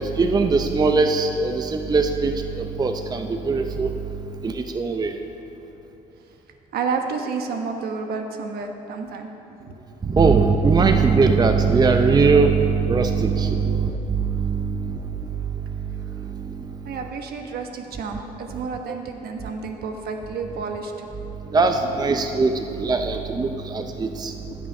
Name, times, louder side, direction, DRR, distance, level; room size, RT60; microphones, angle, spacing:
voice 1, 0.0-3.9 4.4-5.1 10.0-15.0 18.9-19.0 21.5-24.3, right 4 dB, 25° right, 6 dB, 0.6 m, -20 dB
voice 2, 6.7-9.3 9.6-9.8 10.1-10.2 13.6-13.9 14.7-14.8 16.2-16.5 16.8-21.1 24.5-24.6, right 5 dB, 65° right, 4 dB, 1.2 m, -31 dB
15.0 x 6.4 x 5.4 m, 3.0 s
supercardioid pair, 75°, 17 cm